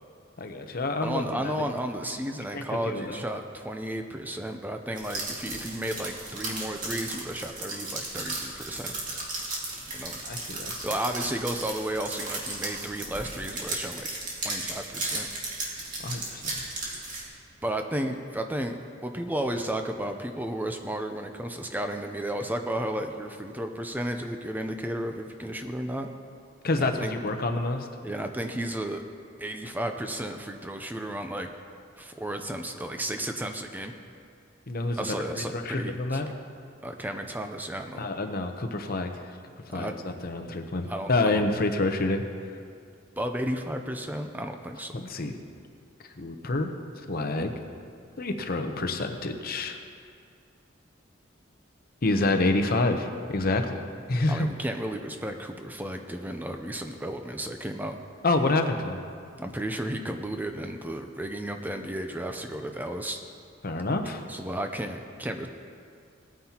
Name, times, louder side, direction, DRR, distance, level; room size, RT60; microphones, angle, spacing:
voice 1, 0.4-1.7 2.5-3.2 10.3-10.8 16.0-16.4 26.6-27.9 34.7-36.3 37.9-39.2 39.7-42.2 44.9-45.3 46.2-46.7 47.1-47.5 48.2-49.8 52.0-53.8 54.1-54.5 58.2-59.0 63.6-64.2, left 2 dB, 50° left, 6 dB, 0.8 m, -28 dB
voice 2, 1.0-9.0 9.9-10.2 10.8-14.1 14.4-15.3 17.6-26.1 26.8-27.1 28.0-29.0 29.4-31.5 32.0-33.9 34.9-36.3 36.8-38.1 39.7-40.0 40.9-41.4 43.2-44.9 54.3-58.0 59.4-63.2 63.9-64.0 64.3-65.5, right 1 dB, 10° right, 5 dB, 0.5 m, -33 dB
sound 1, 5.0-17.3, right 2 dB, 40° right, 2.3 m, -35 dB
18.5 x 9.4 x 2.9 m, 2.3 s
head